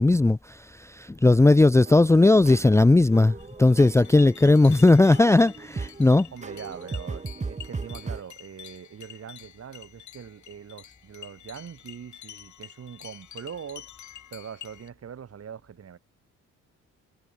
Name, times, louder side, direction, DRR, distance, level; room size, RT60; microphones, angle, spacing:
voice 1, 0.0-6.3, left 2 dB, 10° left, 0.6 m, -18 dB
sound 1, 1.8-8.2, right 4 dB, 25° right, 1.9 m, -38 dB
sound 2, 3.4-14.9, left 11 dB, 70° left, 7.3 m, -47 dB
voice 2, 6.3-13.9 14.3-16.0, right 8 dB, 50° right, 7.7 m, -42 dB
cardioid pair, 90°, 30 cm